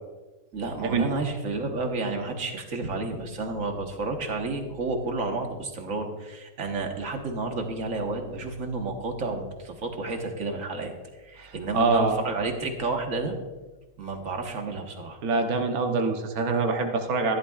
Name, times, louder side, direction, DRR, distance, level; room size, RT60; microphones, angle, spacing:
voice 1, 0.5-13.4 14.0-15.2, right 3 dB, 65° right, 4 dB, 1.6 m, -31 dB
voice 2, 11.4-12.2 15.2-17.4, right 3 dB, 80° right, 4 dB, 1.4 m, -25 dB
14.0 x 12.0 x 2.4 m, 1.2 s
omnidirectional pair, 1.5 m